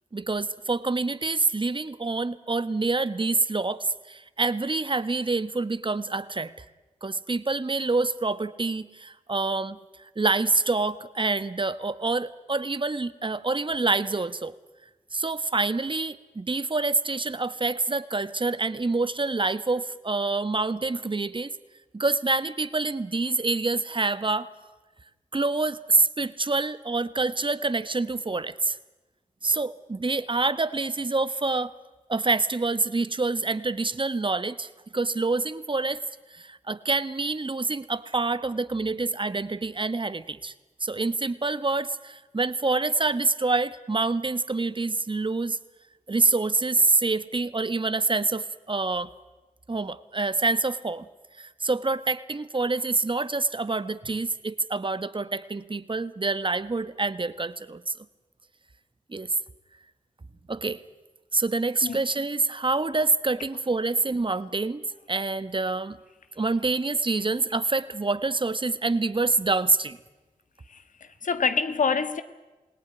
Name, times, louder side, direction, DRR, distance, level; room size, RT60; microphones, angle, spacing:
voice 1, 0.1-6.5 7.0-14.5 15.1-21.5 21.9-24.5 25.3-28.8 29.4-31.7 32.1-36.0 36.3-40.5 40.8-45.6 46.1-49.1 49.7-51.1 51.4-57.9 59.1-59.3 60.5-60.8 61.3-66.0 66.4-70.0, right 3 dB, 40° right, 1.3 m, -26 dB
voice 2, 70.7-72.2, left 5 dB, 70° left, 1.5 m, -27 dB
27.5 x 18.0 x 9.9 m
cardioid pair, 40°, 14 cm